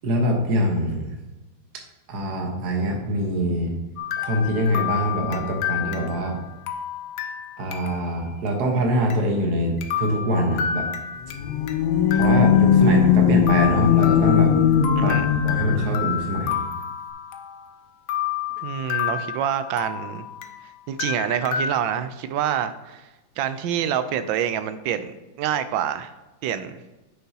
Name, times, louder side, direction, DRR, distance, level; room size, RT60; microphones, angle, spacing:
voice 1, 0.0-1.1 2.1-3.7 4.2-6.4 7.6-10.9 12.1-14.5 15.0-16.6, equal, 55° right, 1 dB, 1.7 m, -24 dB
sound 1, 4.0-8.2 8.5-8.6 9.1-9.2 9.8-11.8 12.1-13.2 13.5-17.7 18.1-20.6 21.0-21.7, left 9 dB, 65° left, 1.1 m, -30 dB
sound 2, 11.2-16.0, left 7 dB, 85° left, 1.4 m, -19 dB
voice 2, 18.6-20.2 20.9-23.1 23.4-26.1 26.4-26.8, right 9 dB, 75° right, 11 dB, 1.3 m, -26 dB
9.3 x 6.6 x 2.9 m, 1.1 s
omnidirectional pair, 2.2 m